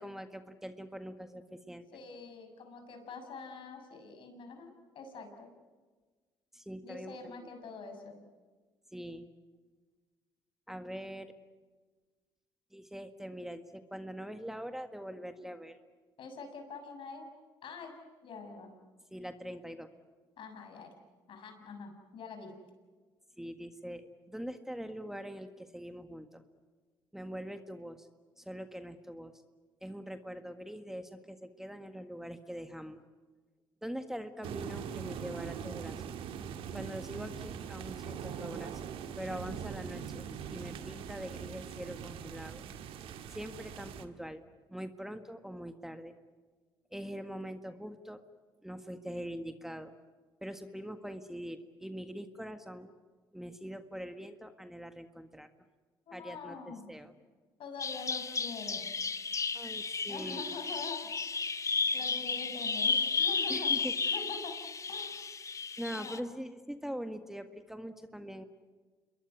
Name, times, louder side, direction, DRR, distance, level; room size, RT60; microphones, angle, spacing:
voice 1, 0.0-1.9 6.5-7.5 8.9-9.3 10.7-11.3 12.7-15.8 19.1-19.9 23.4-26.4 27.1-28.1 28.4-29.3 29.8-33.0 33.8-36.0 36.7-40.2 40.5-42.6 43.3-44.4 44.7-46.1 46.9-48.2 48.6-49.9 50.4-52.9 53.3-55.5 56.1-57.1 59.5-60.5 63.5-63.9 65.8-68.4, equal, 5° right, 8 dB, 1.7 m, -43 dB
voice 2, 1.9-5.5 6.8-8.2 16.2-17.3 17.6-17.9 18.2-18.7 20.4-20.9 21.3-22.5 56.1-56.9 57.6-58.8 60.1-61.1 61.9-63.7 64.0-64.6 64.9-65.2 65.9-66.3, left 4 dB, 65° left, 5 dB, 6.7 m, -45 dB
sound 1, 34.4-44.0, right 8 dB, 75° right, 1.8 m, -42 dB
Bird vocalization bird call bird song, 57.8-66.2, left 5 dB, 35° left, 1.3 m, -33 dB
27.5 x 22.0 x 9.5 m, 1.4 s
supercardioid pair, 70°, 10 cm